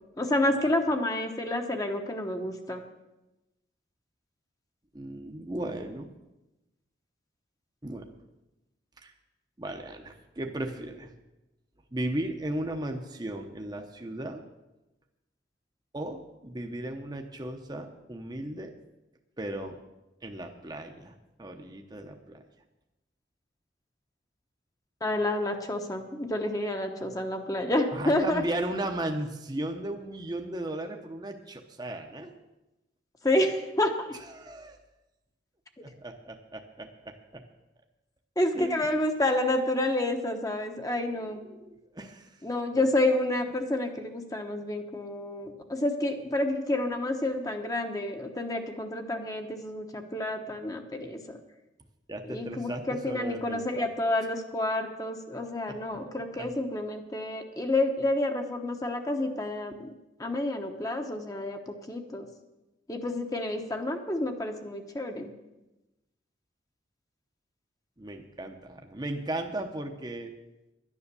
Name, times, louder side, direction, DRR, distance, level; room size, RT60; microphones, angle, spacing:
voice 1, 0.2-2.8 25.0-28.4 33.2-33.9 38.4-41.4 42.4-51.4 52.3-59.9 60.2-62.3 62.9-65.3, left 1 dB, 20° left, 4 dB, 1.0 m, -29 dB
voice 2, 4.9-6.1 7.8-8.1 9.0-9.1 9.6-11.1 11.9-14.4 15.9-18.7 19.4-19.8 20.2-22.4 27.9-32.3 34.1-34.8 35.8-37.4 38.5-38.9 40.8-42.4 52.1-53.9 55.7-56.0 56.3-56.5 68.0-70.3, right 1 dB, 20° right, 3 dB, 0.8 m, -36 dB
11.5 x 9.8 x 6.9 m, 1.0 s
head